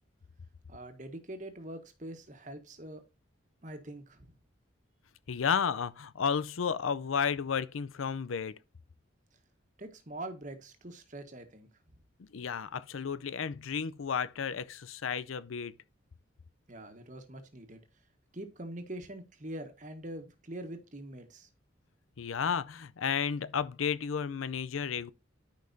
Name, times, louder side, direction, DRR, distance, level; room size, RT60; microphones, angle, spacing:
voice 1, 0.7-3.0 3.6-4.4 9.8-12.0 16.7-17.8 18.3-21.5, right 1 dB, 40° right, 1.4 m, -44 dB
voice 2, 5.3-8.6 12.3-15.7 22.2-25.1, left 6 dB, 90° left, 0.5 m, -32 dB
13.0 x 5.3 x 2.7 m
head